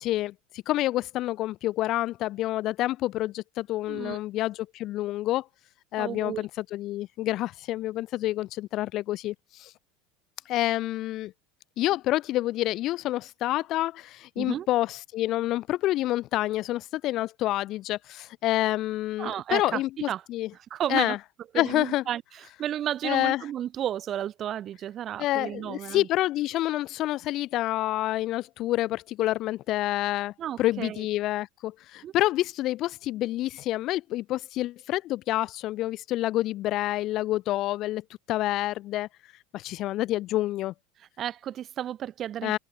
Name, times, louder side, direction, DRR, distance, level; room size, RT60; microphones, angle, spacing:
voice 1, 0.0-5.5 5.9-9.7 10.5-11.3 11.8-20.5 20.9-21.2 21.6-22.0 23.0-23.4 25.2-30.3 30.6-39.1 39.5-40.7 42.4-42.6, left 15 dB, 45° left, 0.4 m, -28 dB
voice 2, 3.9-4.2 6.0-6.5 14.4-14.7 19.2-19.8 20.1-20.2 20.7-21.2 21.5-26.1 30.4-31.1 32.0-32.1 41.2-42.6, right 11 dB, 35° right, 0.4 m, -32 dB
supercardioid pair, 140°, 0 cm